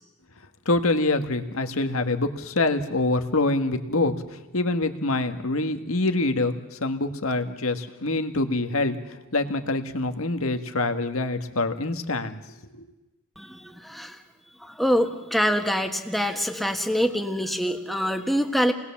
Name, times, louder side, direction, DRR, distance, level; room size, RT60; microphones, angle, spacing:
voice 1, 0.6-12.4 12.7-12.9, left 2 dB, 80° left, 7 dB, 1.6 m, -25 dB
voice 2, 13.4-14.2 14.6-18.7, equal, ahead, 5 dB, 1.5 m, -25 dB
28.5 x 19.5 x 7.2 m, 1.1 s
head